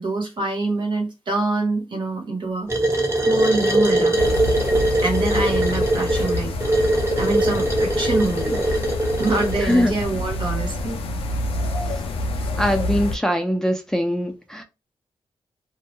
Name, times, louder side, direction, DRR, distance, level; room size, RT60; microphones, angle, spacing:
voice 1, 0.0-2.7 3.3-4.2 5.0-6.5 7.2-8.8 9.2-11.0, right 3 dB, 55° right, 1.0 m, -25 dB
sound 1, 2.7-9.8, right 1 dB, 30° right, 1.0 m, -21 dB
sound 2, 4.2-13.2, left 2 dB, 85° left, 0.4 m, -27 dB
voice 2, 9.6-9.9 11.9-12.0 12.6-14.6, equal, 5° left, 0.4 m, -22 dB
2.2 x 2.1 x 3.0 m
cardioid pair, 70°, 10 cm